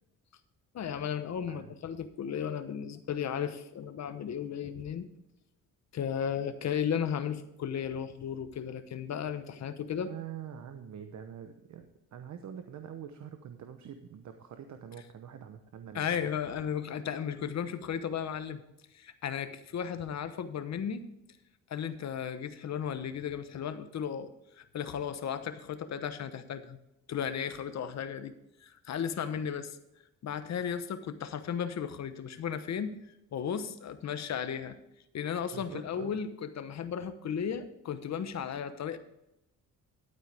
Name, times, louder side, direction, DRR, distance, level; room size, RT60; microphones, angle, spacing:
voice 1, 0.7-5.1 5.9-10.1 15.9-18.6 18.9-21.0 21.7-24.3 24.6-26.8 27.1-28.3 28.6-29.8 30.2-33.0 33.3-34.7 35.1-39.0, left 8 dB, 55° left, 10 dB, 1.1 m, -35 dB
voice 2, 9.9-16.3 35.5-36.1, right 8 dB, 55° right, 7 dB, 1.0 m, -45 dB
12.0 x 8.9 x 3.5 m, 0.86 s
cardioid pair, 135°, 33 cm